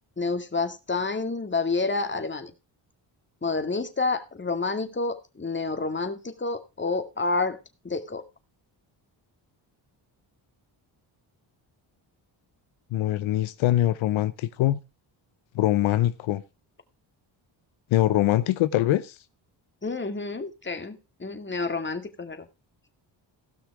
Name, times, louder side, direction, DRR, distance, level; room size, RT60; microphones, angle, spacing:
voice 1, 0.2-2.5 3.4-7.6 7.8-8.2 19.8-22.5, left 3 dB, 25° left, 2.2 m, -29 dB
voice 2, 12.9-14.8 15.5-16.4 17.9-19.1, left 14 dB, 85° left, 0.8 m, -23 dB
17.0 x 6.0 x 4.9 m
cardioid pair, 70°, 46 cm